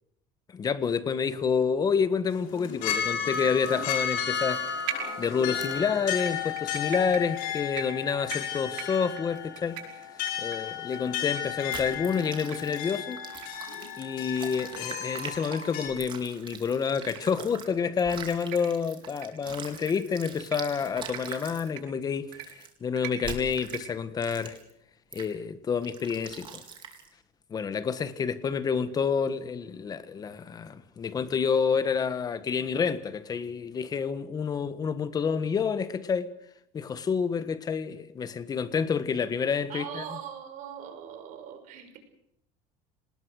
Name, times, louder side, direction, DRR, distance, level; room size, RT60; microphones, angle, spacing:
voice 1, 0.5-4.6 4.9-9.8 10.4-13.2 14.0-22.3 22.8-24.6 25.1-26.6 27.5-36.3 36.7-40.0, left 6 dB, 25° left, 1.6 m, -28 dB
sound 1, 2.3-15.9, left 8 dB, 65° left, 6.6 m, -33 dB
sound 2, 4.9-5.7 6.2-12.2 12.5-12.6 12.9-13.0 13.4-13.5 13.8-13.9 14.4-14.5 14.8-14.9 15.4-15.5 16.4-16.6 17.0-17.2 17.7-17.9 18.3-18.6 19.0-19.3 19.7-19.9 20.4-20.6 21.1-21.2 21.7-21.8 22.3-22.5 23.0-23.1 23.6-23.8 24.3-24.4, right 12 dB, 90° right, 7.4 m, -39 dB
sound 3, 11.7-17.7 18.0-21.7 22.3-22.7 23.2-23.8 24.2-24.7 25.1-25.3 25.8-27.1, right 6 dB, 30° right, 4.1 m, -43 dB
voice 2, 39.7-42.0, right 9 dB, 55° right, 5.8 m, -40 dB
26.5 x 20.0 x 6.5 m
cardioid pair, 150°, 16 cm